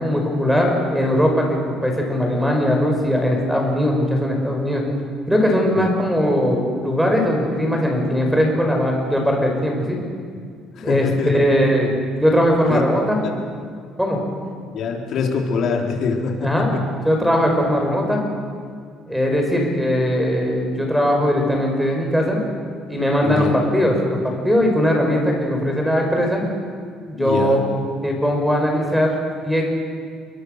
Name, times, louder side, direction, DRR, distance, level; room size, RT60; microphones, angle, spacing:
voice 1, 0.0-4.8 5.3-10.0 10.8-11.9 12.2-13.2 14.0-14.2 16.4-16.8 17.0-18.2 19.1-22.4 22.9-23.9 24.2-26.4 27.1-27.6 28.0-29.1 29.4-29.7, equal, ahead, 1 dB, 5.6 m, -19 dB
voice 2, 10.8-11.3 12.7-12.8 14.7-16.8 23.2-23.6 27.2-27.6, left 5 dB, 55° left, 1 dB, 4.0 m, -24 dB
29.0 x 22.0 x 6.7 m, 2.1 s
cardioid pair, 145°, 0 cm